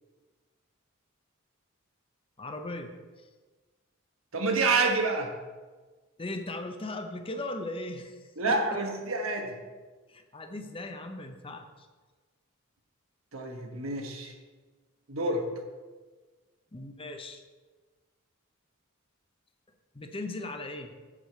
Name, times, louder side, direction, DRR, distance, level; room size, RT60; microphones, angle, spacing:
voice 1, 2.4-3.3 6.2-8.6 10.1-11.9 16.7-17.4 19.9-20.9, left 2 dB, 25° left, 5 dB, 0.7 m, -38 dB
voice 2, 4.3-5.3 8.4-9.6 13.3-14.3 15.1-15.5, right 3 dB, 75° right, 3 dB, 1.3 m, -28 dB
7.5 x 4.9 x 6.7 m, 1.3 s
head